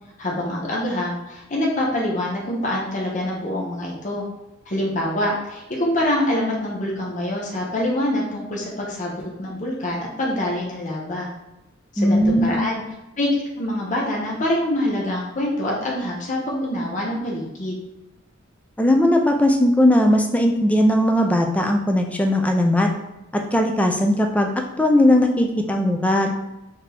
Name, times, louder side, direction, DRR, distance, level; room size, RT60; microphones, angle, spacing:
voice 1, 0.2-4.2 4.7-11.3 11.9-12.8 13.2-13.3 13.6-17.7, left 1 dB, 40° left, -3 dB, 0.7 m, -25 dB
voice 2, 12.0-12.6 18.8-22.9 23.3-24.5 24.8-26.3, left 1 dB, 5° left, 3 dB, 0.3 m, -18 dB
4.1 x 2.7 x 3.3 m, 0.96 s
head